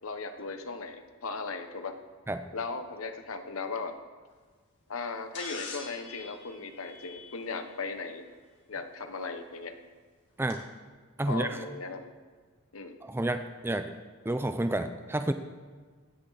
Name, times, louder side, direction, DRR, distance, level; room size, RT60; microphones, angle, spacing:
voice 1, 0.0-2.0 2.5-4.0 4.9-8.3 8.7-9.7 11.3-12.1 12.7-13.0, left 4 dB, 70° left, 8 dB, 1.1 m, -37 dB
sound 1, 5.3-7.7 9.2-9.3 10.5-10.6, left 3 dB, 55° left, 2.6 m, -44 dB
voice 2, 11.2-11.6 13.0-13.9 14.2-15.3, right 1 dB, 10° right, 9 dB, 0.4 m, -30 dB
16.0 x 10.5 x 4.1 m, 1.5 s
head